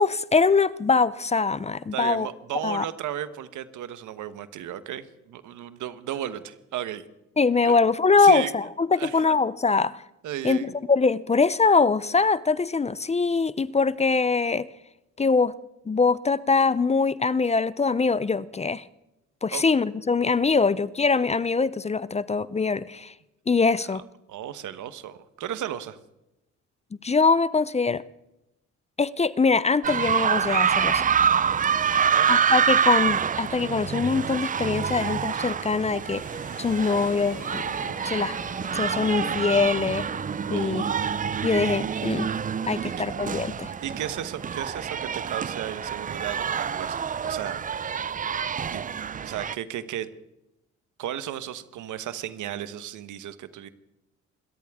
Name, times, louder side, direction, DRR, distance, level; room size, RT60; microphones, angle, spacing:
voice 1, 0.0-2.3 2.6-2.8 7.4-10.0 10.4-14.7 15.2-15.5 15.9-18.8 19.4-23.1 23.5-24.0 27.0-28.0 29.0-31.0 32.3-36.2 36.6-37.6 38.0-38.3 38.7-40.0 40.5-40.8 41.4-42.3 42.7-43.7, left 4 dB, 20° left, 0.6 m, -23 dB
voice 2, 1.9-7.0 7.6-7.8 8.2-8.5 8.9-9.2 10.2-10.7 19.5-19.6 24.3-26.0 31.8-32.3 40.5-41.0 42.8-42.9 43.8-48.0 48.7-48.8 49.2-50.1 51.0-53.7, right 11 dB, 80° right, 1.2 m, -34 dB
sound 1, 29.8-49.5, right 7 dB, 30° right, 0.4 m, -26 dB
sound 2, 35.0-46.6, left 4 dB, 85° left, 5.5 m, -47 dB
26.5 x 13.5 x 3.6 m
cardioid pair, 90°, 30 cm